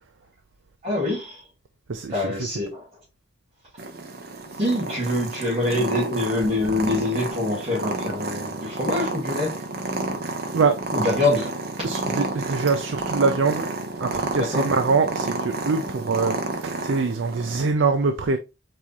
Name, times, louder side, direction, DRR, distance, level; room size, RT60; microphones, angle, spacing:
voice 1, 0.8-1.5 2.1-2.9 4.6-9.6 10.9-11.5 14.4-14.7, left 2 dB, 35° right, 2.1 m, -25 dB
voice 2, 1.9-2.5 10.0-10.1 10.5-10.8 11.8-13.7 14.0-18.4, right 4 dB, 90° right, 0.5 m, -24 dB
Purr, 3.8-17.7, right 2 dB, 55° right, 0.9 m, -30 dB
4.9 x 3.6 x 2.8 m
head